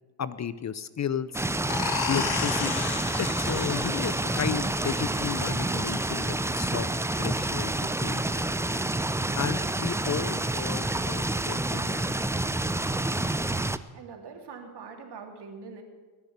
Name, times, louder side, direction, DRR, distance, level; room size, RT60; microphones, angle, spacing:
voice 1, 0.2-1.4 2.1-2.8 3.2-6.9 7.2-7.7 8.0-8.4 9.4-12.0, left 8 dB, 40° left, 15 dB, 0.7 m, -33 dB
sound 1, 1.3-13.8, right 2 dB, 5° right, 0.6 m, -28 dB
sound 2, 1.7-7.1, left 7 dB, 55° left, 2.4 m, -35 dB
voice 2, 13.9-15.8, right 5 dB, 60° right, 3 dB, 3.3 m, -43 dB
20.0 x 6.8 x 9.6 m, 1.3 s
supercardioid pair, 75°, 44 cm